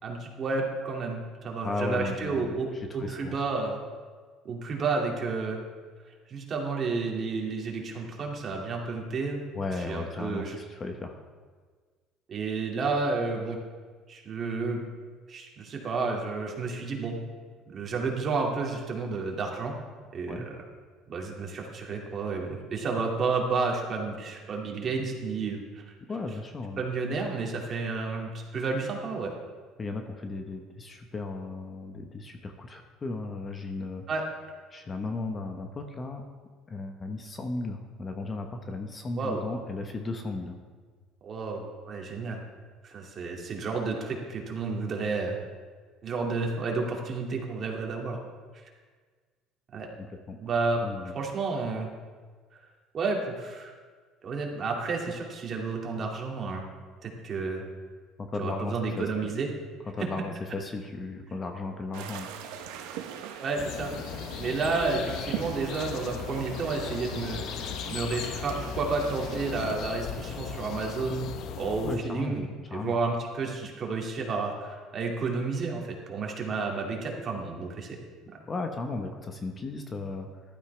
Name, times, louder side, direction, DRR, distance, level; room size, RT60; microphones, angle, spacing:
voice 1, 0.0-3.8 4.4-5.6 6.3-9.4 9.9-10.6 12.3-13.6 14.1-14.8 15.3-17.2 17.7-19.7 20.1-20.5 21.1-25.8 26.8-29.3 34.1-34.2 39.1-39.4 41.2-42.4 42.8-45.4 46.0-48.2 49.7-49.9 50.4-50.8 51.1-51.9 52.9-53.7 54.2-56.6 57.0-57.6 58.4-59.5 63.2-63.9 64.4-71.3 71.6-72.5 72.7-78.0, right 4 dB, 40° right, 0 dB, 2.4 m, -31 dB
voice 2, 1.6-3.4 9.5-11.2 20.3-20.5 26.1-26.8 29.8-34.0 34.7-36.2 36.7-40.6 50.0-50.4 50.8-51.1 58.2-59.3 59.9-62.3 71.8-72.4 72.6-72.9 78.5-80.3, left 3 dB, 25° left, 5 dB, 1.2 m, -35 dB
sound 1, 61.9-69.8, right 9 dB, 90° right, 1.0 m, -41 dB
sound 2, 63.6-72.0, left 8 dB, 65° left, 0.8 m, -37 dB
14.5 x 12.5 x 3.4 m, 1.5 s
cardioid pair, 115°, 0 cm